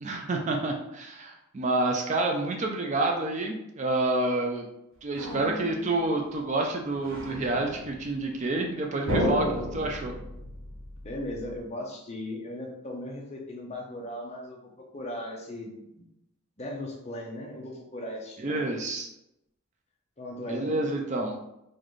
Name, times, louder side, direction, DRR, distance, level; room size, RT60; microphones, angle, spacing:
voice 1, 0.0-4.7 5.0-10.1 18.4-19.1 20.5-21.3, right 2 dB, 35° right, 1 dB, 0.4 m, -28 dB
sound 1, 5.1-6.2 6.9-8.4 9.1-11.6, equal, 70° right, 0.9 m, -33 dB
voice 2, 11.0-16.0 16.6-18.5 20.2-20.8, left 1 dB, 30° left, -1 dB, 0.7 m, -38 dB
3.9 x 2.6 x 3.1 m, 0.84 s
head